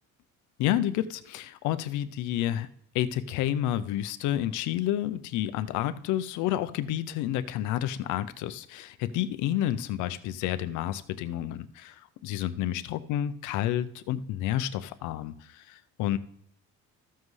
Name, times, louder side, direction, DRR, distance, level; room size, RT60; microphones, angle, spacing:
voice 1, 0.6-2.7 2.9-16.2, left 12 dB, 75° left, 12 dB, 0.6 m, -30 dB
13.5 x 7.5 x 3.2 m, 0.69 s
cardioid pair, 160°, 30 cm